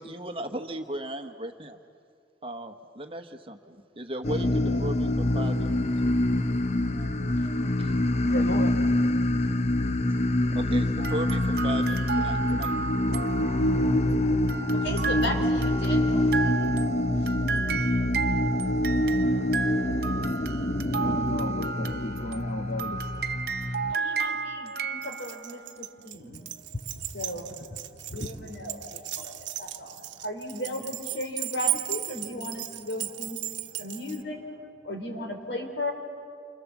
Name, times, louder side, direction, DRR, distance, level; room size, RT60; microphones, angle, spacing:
voice 1, 0.0-1.8 2.4-5.8 7.8-7.9 10.5-12.8 13.1-13.3, right 1 dB, 30° right, 6 dB, 1.2 m, -36 dB
sound 1, 4.2-23.9, left 1 dB, 35° left, 0.7 m, -26 dB
voice 2, 6.6-7.6 7.9-9.1 12.4-12.6 12.9-13.0 14.1-14.2 16.2-16.3 17.1-17.3 20.9-23.1 26.3-26.5 27.9-28.0, left 1 dB, 60° left, 4 dB, 1.3 m, -37 dB
sound 2, 11.0-14.1 14.5-25.7, right 5 dB, 55° right, 0.7 m, -33 dB
voice 3, 14.7-16.2 23.9-26.8 27.1-33.4 33.7-34.6 34.8-35.9, left 1 dB, 75° left, 3 dB, 4.0 m, -36 dB
Keys jangling, 25.0-34.2, right 14 dB, 85° right, 1.0 m, -35 dB
28.5 x 25.0 x 7.4 m, 2.3 s
head